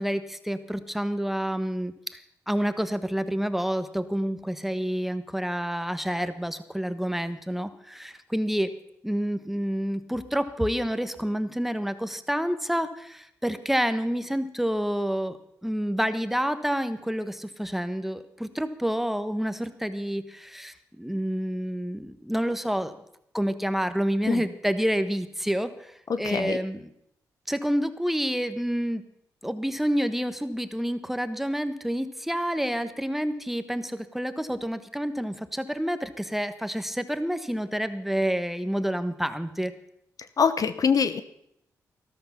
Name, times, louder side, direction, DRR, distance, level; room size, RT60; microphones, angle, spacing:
voice 1, 0.0-2.2 2.5-8.7 9.0-15.4 15.6-22.9 23.3-26.9 27.5-29.0 29.4-39.7, equal, 5° right, 11 dB, 1.2 m, -28 dB
voice 2, 26.1-26.6 40.4-41.2, left 6 dB, 55° left, 12 dB, 0.8 m, -24 dB
13.0 x 12.5 x 5.8 m, 0.76 s
supercardioid pair, 55°, 7 cm